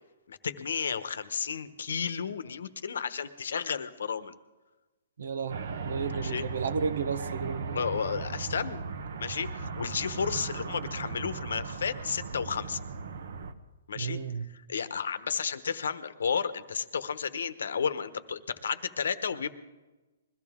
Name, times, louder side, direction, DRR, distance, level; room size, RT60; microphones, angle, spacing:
voice 1, 0.3-4.3 6.1-6.4 7.7-8.8 9.2-12.8 13.9-14.2 14.7-19.6, left 6 dB, 75° left, 13 dB, 1.0 m, -32 dB
voice 2, 5.2-7.8 14.0-14.5, right 6 dB, 70° right, 12 dB, 0.9 m, -33 dB
sound 1, 5.5-13.5, right 4 dB, 55° right, 1.0 m, -37 dB
21.5 x 14.5 x 3.7 m, 1.2 s
hypercardioid pair, 175°, 0 cm